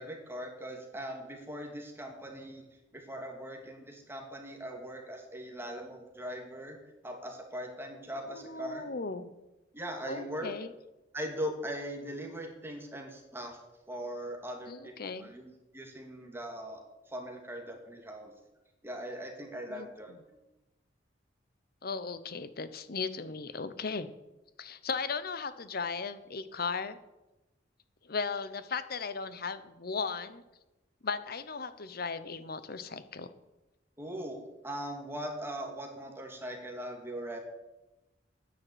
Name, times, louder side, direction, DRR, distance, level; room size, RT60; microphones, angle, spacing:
voice 1, 0.0-2.7 2.9-6.8 7.0-8.8 9.7-10.5 11.1-13.6 13.9-14.9 15.2-18.3 18.8-20.4 34.0-34.4 34.6-37.4, equal, 15° right, 2 dB, 2.4 m, -40 dB
voice 2, 8.3-9.3 10.1-10.7 14.7-15.3 19.7-19.9 21.8-24.1 24.6-27.0 28.0-30.4 31.0-33.3, left 4 dB, 55° left, 13 dB, 0.9 m, -36 dB
10.0 x 9.6 x 8.1 m, 1.0 s
head